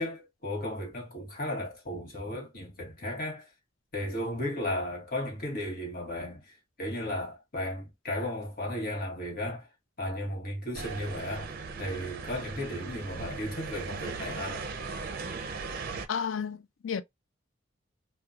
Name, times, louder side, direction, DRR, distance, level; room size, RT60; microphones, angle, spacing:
voice 1, 0.0-3.5 3.9-6.5 6.8-9.7 10.0-11.5 11.8-14.6, left 1 dB, 50° left, 1.2 m, -35 dB
sound 1, 10.7-16.1, right 4 dB, 50° right, 0.5 m, -38 dB
voice 2, 16.1-17.0, left 7 dB, 75° left, 0.4 m, -32 dB
2.7 x 2.2 x 2.3 m
head